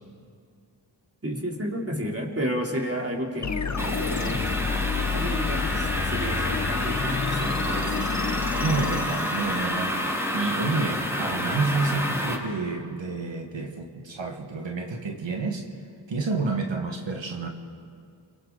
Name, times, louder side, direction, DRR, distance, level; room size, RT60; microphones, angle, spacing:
voice 1, 1.2-4.5 4.9-8.1, equal, 30° right, -1 dB, 3.7 m, -32 dB
sound 1, 3.4-9.9, left 6 dB, 40° left, 1.0 m, -30 dB
sound 2, 3.8-12.3, equal, 5° right, 5.1 m, -29 dB
voice 2, 8.6-15.6 16.1-17.5, right 3 dB, 75° right, 2 dB, 1.9 m, -29 dB
29.5 x 23.5 x 4.1 m, 2.3 s
cardioid pair, 50°, 46 cm